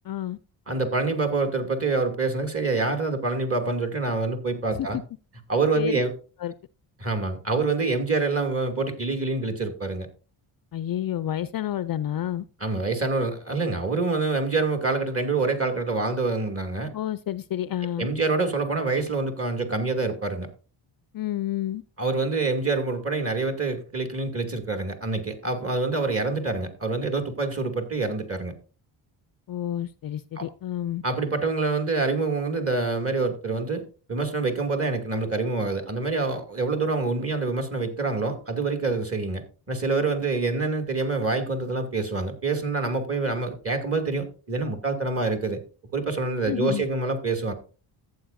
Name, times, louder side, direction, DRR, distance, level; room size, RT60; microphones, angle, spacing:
voice 1, 0.0-0.4 4.8-5.0 5.7-6.0 6.4-6.5 10.7-12.5 16.9-18.1 21.1-21.8 29.5-31.0 46.5-46.8, left 12 dB, 45° left, 0.5 m, -29 dB
voice 2, 0.7-5.0 5.5-6.1 7.0-10.1 12.6-16.9 18.0-20.5 22.0-28.5 30.4-30.5 31.0-45.6 45.9-47.5, right 3 dB, 30° right, 2.6 m, -26 dB
14.0 x 8.6 x 2.7 m
cardioid pair, 90°, 49 cm